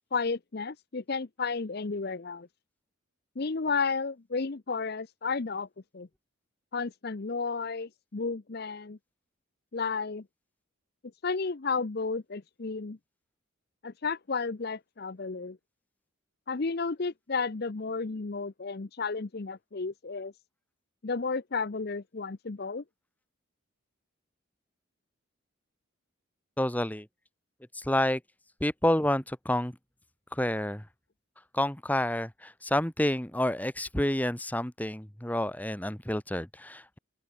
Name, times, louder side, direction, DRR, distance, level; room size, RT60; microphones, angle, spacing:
voice 1, 0.1-2.5 3.4-5.7 5.9-6.1 6.7-9.0 9.7-10.2 11.2-13.0 13.8-15.6 16.5-20.3 21.0-22.8, left 4 dB, 50° left, 0.7 m, -32 dB
voice 2, 26.6-27.1 27.7-28.2 28.6-29.7 30.3-30.8 31.5-37.0, left 1 dB, 10° left, 1.3 m, -29 dB
open air
head